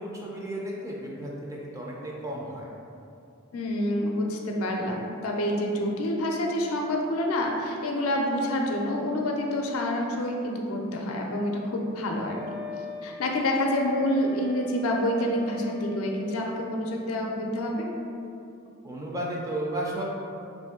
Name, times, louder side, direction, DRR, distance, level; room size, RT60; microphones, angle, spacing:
voice 1, 0.0-2.7 18.8-20.0, right 1 dB, 15° right, -3 dB, 0.4 m, -33 dB
voice 2, 3.5-12.6 13.0-17.9, left 1 dB, 80° left, 0 dB, 0.5 m, -27 dB
Wind instrument woodwind instrument, 12.2-16.5, equal, 70° right, 1.4 m, -42 dB
3.1 x 2.5 x 3.5 m, 2.6 s
head